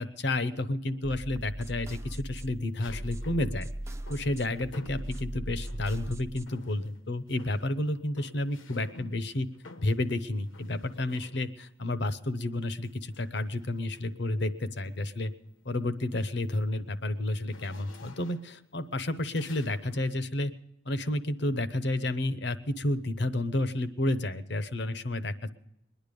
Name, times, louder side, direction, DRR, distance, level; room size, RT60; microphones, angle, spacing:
voice 1, 0.0-3.7 4.1-9.5 9.8-15.3 15.6-20.5 20.9-25.5, left 1 dB, 60° left, 12 dB, 0.8 m, -31 dB
sound 1, 0.9-1.4 2.8-6.1 6.5-7.0 7.3-11.7 12.8-14.2 14.8-15.0 15.4-20.1, left 3 dB, 80° left, 1.1 m, -54 dB
sound 2, 1.0-6.4, right 1 dB, 15° right, 0.4 m, -39 dB
22.5 x 10.0 x 5.2 m, 0.84 s
head